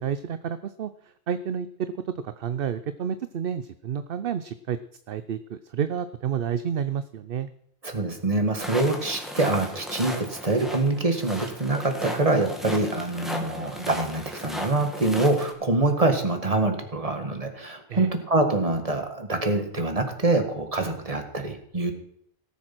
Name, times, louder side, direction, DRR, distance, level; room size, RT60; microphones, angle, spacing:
voice 1, 0.0-4.8 5.1-7.5 17.9-18.1, right 8 dB, 60° right, 12 dB, 0.8 m, -30 dB
voice 2, 7.8-21.9, right 2 dB, 35° right, 5 dB, 2.0 m, -25 dB
sound 1, 8.6-15.5, equal, ahead, 2.0 m, -35 dB
18.0 x 7.3 x 6.0 m, 0.69 s
omnidirectional pair, 1.1 m